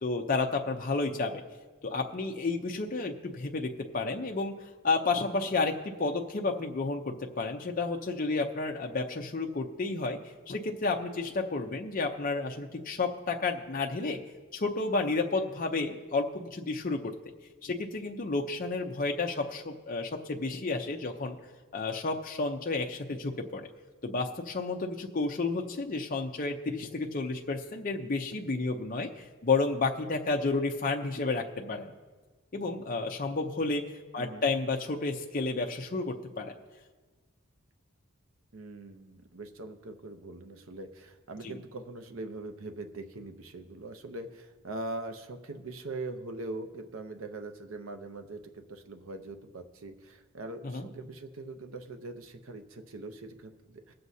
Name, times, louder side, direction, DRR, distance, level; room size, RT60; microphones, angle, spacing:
voice 1, 0.0-1.4 1.8-4.5 4.8-10.2 10.5-14.2 14.5-17.1 17.6-21.4 21.7-23.7 24.0-31.9 32.5-33.8 34.1-36.5 41.4-41.5 50.6-50.9, left 3 dB, 40° left, 2 dB, 0.6 m, -31 dB
voice 2, 38.5-53.9, right 2 dB, 80° right, 7 dB, 0.7 m, -42 dB
23.0 x 7.7 x 2.7 m, 1.3 s
head